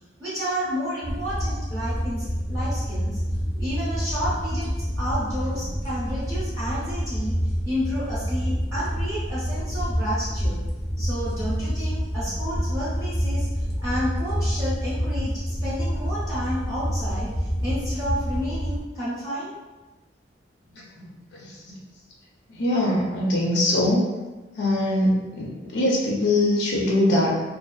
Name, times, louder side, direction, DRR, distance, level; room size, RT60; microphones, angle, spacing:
voice 1, 0.2-3.2 3.5-4.7 5.0-7.4 7.6-10.6 11.0-19.6, equal, 20° right, -10 dB, 0.7 m, -31 dB
sound 1, 1.0-18.8, equal, 20° left, 0.4 m, -27 dB
voice 2, 21.3-21.7 22.6-24.1 24.6-27.4, left 1 dB, 70° left, -3 dB, 0.5 m, -22 dB
2.6 x 2.4 x 2.3 m, 1.2 s
head